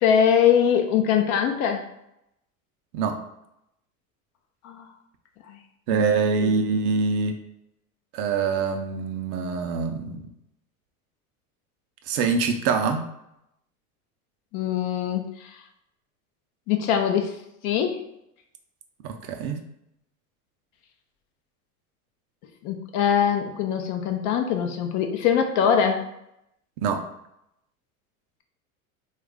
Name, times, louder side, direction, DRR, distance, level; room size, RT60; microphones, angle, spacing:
voice 1, 0.0-1.9 4.6-4.8 5.5-5.6 5.9-6.1 6.4-6.5 14.5-15.5 16.7-17.3 17.6-18.0 22.6-26.0, left 8 dB, 45° left, 5 dB, 0.5 m, -22 dB
voice 2, 5.9-7.4 8.1-10.3 12.1-13.0 19.0-19.6 26.8-27.0, right 5 dB, 50° right, 6 dB, 0.6 m, -24 dB
3.1 x 2.4 x 3.5 m, 0.80 s
hypercardioid pair, 90°, 43 cm